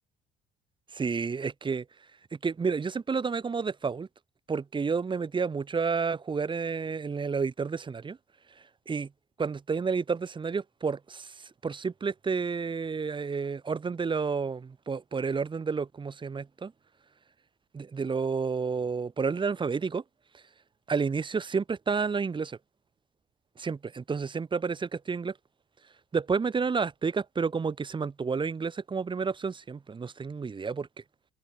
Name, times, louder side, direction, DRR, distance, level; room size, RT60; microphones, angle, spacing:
voice 1, 0.9-1.9 2.3-4.1 4.5-8.2 8.6-9.1 9.4-16.7 17.7-20.0 20.3-20.4 20.9-22.6 23.6-25.4 26.1-30.9, right 5 dB, 30° right, 4.3 m, -30 dB
cardioid pair, 110°, 17 cm